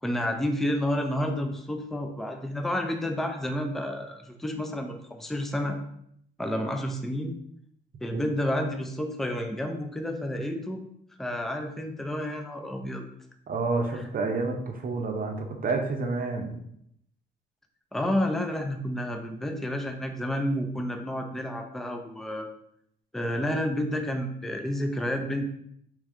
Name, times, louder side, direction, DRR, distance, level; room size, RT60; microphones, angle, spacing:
voice 1, 0.0-5.8 6.4-7.3 8.0-10.8 11.2-13.0 13.9-14.0 17.9-22.5 23.1-25.5, left 1 dB, ahead, 4 dB, 0.5 m, -30 dB
voice 2, 13.5-16.6, right 3 dB, 45° right, 4 dB, 0.7 m, -29 dB
3.3 x 3.2 x 3.6 m, 0.72 s
cardioid pair, 90°, 20 cm